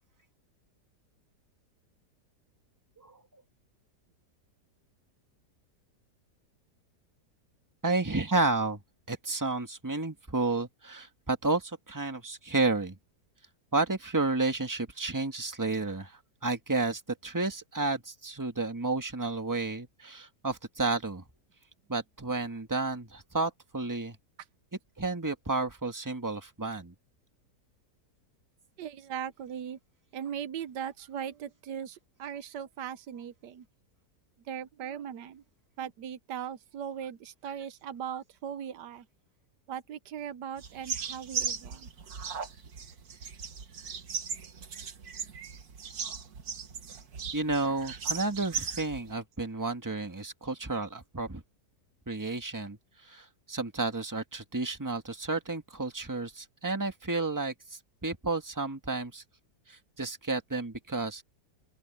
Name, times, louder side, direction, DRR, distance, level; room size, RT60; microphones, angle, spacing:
voice 1, 7.8-8.8 9.1-13.0 13.7-21.2 21.9-24.2 25.0-26.9 47.3-51.4 52.1-52.8 53.0-59.2 59.7-61.2, right 3 dB, 10° right, 1.6 m, -31 dB
voice 2, 28.8-29.8 30.1-33.7 34.4-35.4 35.8-39.1 39.7-41.9, right 8 dB, 85° right, 1.4 m, -39 dB
sound 1, 40.6-49.1, right 6 dB, 65° right, 1.9 m, -37 dB
open air
omnidirectional pair, 1.8 m